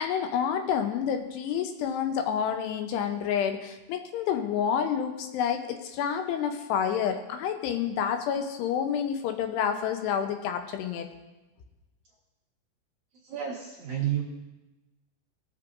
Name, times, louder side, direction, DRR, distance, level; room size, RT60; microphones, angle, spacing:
voice 1, 0.0-11.1, left 8 dB, 80° left, 6 dB, 2.7 m, -29 dB
voice 2, 13.2-14.2, right 10 dB, 70° right, -6 dB, 1.8 m, -30 dB
18.0 x 7.6 x 2.5 m, 1.1 s
omnidirectional pair, 5.0 m